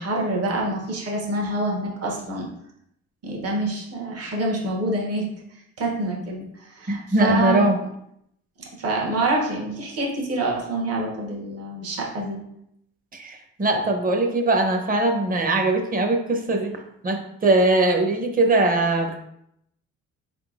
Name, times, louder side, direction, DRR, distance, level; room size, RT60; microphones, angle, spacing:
voice 1, 0.0-2.5 3.2-5.2 5.8-7.7 8.6-12.4, right 2 dB, 55° right, -1 dB, 1.1 m, -26 dB
voice 2, 6.9-7.8 13.1-16.7 17.0-19.2, right 2 dB, 30° right, 3 dB, 0.7 m, -21 dB
4.3 x 3.7 x 2.4 m, 0.77 s
cardioid pair, 90°, 30 cm